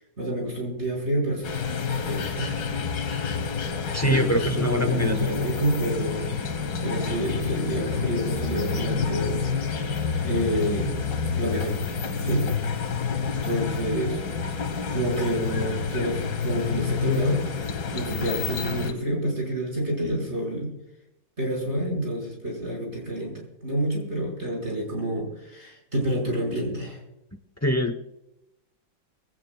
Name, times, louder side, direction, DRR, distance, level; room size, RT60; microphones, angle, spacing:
voice 1, 0.2-1.5 2.1-2.6 4.0-6.3 6.8-9.4 10.2-11.8 12.2-12.5 13.0-13.1 13.4-14.2 14.9-20.7 21.4-27.0, right 1 dB, 35° right, 0 dB, 5.6 m, -28 dB
sound 1, 1.4-18.9, left 5 dB, 85° left, 2.0 m, -28 dB
voice 2, 3.9-5.3 27.6-28.0, equal, 20° left, 6 dB, 0.4 m, -24 dB
21.5 x 17.0 x 2.3 m, 0.84 s
omnidirectional pair, 1.9 m